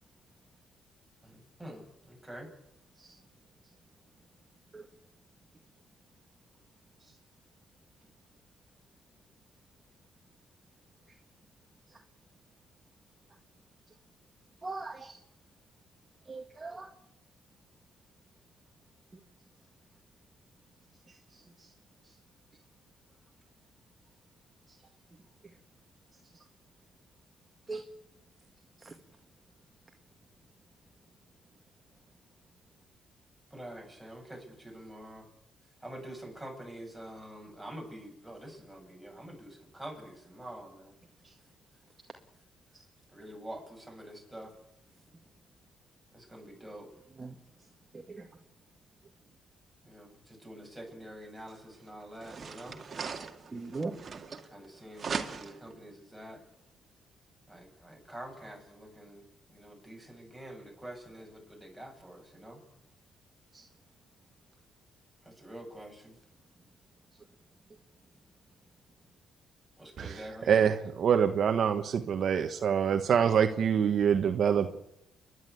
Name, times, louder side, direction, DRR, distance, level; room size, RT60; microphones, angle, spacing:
voice 1, 1.2-2.5 33.5-35.3 35.8-40.9 43.1-44.5 46.1-46.9 49.8-52.8 54.5-56.4 57.5-62.6 65.2-66.1 69.8-70.5, right 1 dB, ahead, -1 dB, 7.6 m, -46 dB
voice 2, 14.6-15.2 16.3-16.9 21.1-21.7 26.3-26.4 27.7-27.8 28.8-28.9 47.2-47.4 47.9-48.3 53.5-53.9 63.5-63.6, right 3 dB, 25° right, 3 dB, 1.9 m, -40 dB
sound 1, 51.5-51.6 52.1-54.7 55.0-55.7, right 5 dB, 40° right, 2.0 m, -39 dB
voice 3, 70.0-74.8, right 7 dB, 60° right, 7 dB, 1.2 m, -26 dB
29.5 x 11.0 x 8.4 m, 0.79 s
cardioid pair, 90°, 0 cm